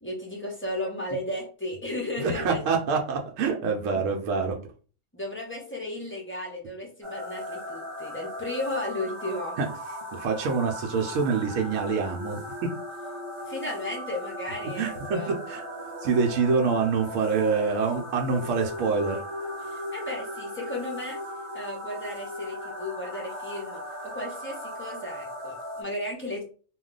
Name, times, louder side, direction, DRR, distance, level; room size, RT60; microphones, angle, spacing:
voice 1, 0.0-2.6 5.1-9.6 13.5-15.3 19.6-21.2 21.5-26.4, left 1 dB, 20° left, -2 dB, 0.3 m, -34 dB
voice 2, 2.2-4.6 9.6-9.7 10.1-12.7 14.8-15.6 16.0-19.2, right 5 dB, 75° right, 2 dB, 0.9 m, -26 dB
sound 1, 7.0-25.8, equal, 30° right, 0.6 m, -37 dB
2.3 x 2.2 x 3.7 m, 0.39 s
omnidirectional pair, 1.4 m